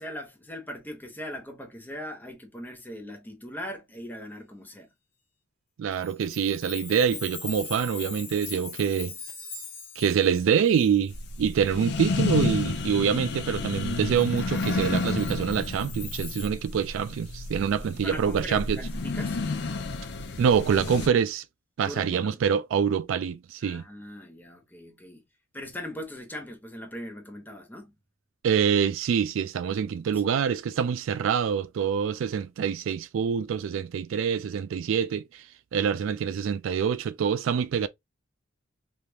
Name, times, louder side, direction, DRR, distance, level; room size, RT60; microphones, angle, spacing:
voice 1, 0.0-4.9 17.8-19.4 21.8-22.4 23.6-25.2 25.5-27.9 30.1-30.3, left 1 dB, 10° left, 0.8 m, -40 dB
voice 2, 5.8-9.1 10.0-18.8 20.4-21.4 21.8-23.8 28.4-35.5 35.7-37.9, right 7 dB, 70° right, 0.3 m, -25 dB
Chime, 5.9-12.0 12.4-12.5 14.2-16.5, left 6 dB, 30° left, 1.3 m, -42 dB
sound 1, 11.1-21.1, left 3 dB, 60° left, 0.6 m, -31 dB
3.4 x 2.4 x 2.8 m
head